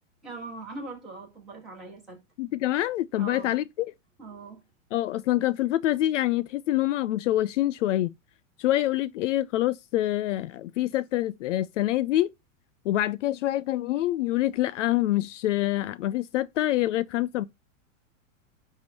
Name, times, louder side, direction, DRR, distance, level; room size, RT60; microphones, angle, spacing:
voice 1, 0.2-2.2 3.1-3.6 4.2-4.6, right 3 dB, ahead, 4.3 m, -41 dB
voice 2, 2.4-3.9 4.9-8.1 8.6-12.3 12.8-17.5, left 14 dB, 65° left, 0.5 m, -26 dB
10.5 x 3.6 x 5.9 m
supercardioid pair, 175°, 40 cm